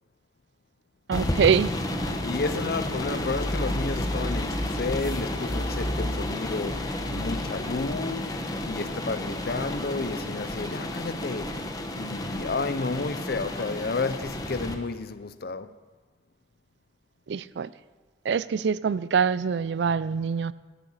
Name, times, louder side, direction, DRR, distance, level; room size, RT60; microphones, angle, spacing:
sound 1, 1.1-14.8, left 1 dB, 20° left, 1.0 m, -31 dB
voice 1, 1.1-1.7 17.3-17.7 18.3-20.5, right 6 dB, 75° right, 0.4 m, -24 dB
voice 2, 2.2-11.6 12.0-15.8, left 3 dB, 55° left, 0.6 m, -31 dB
12.5 x 12.0 x 5.6 m
head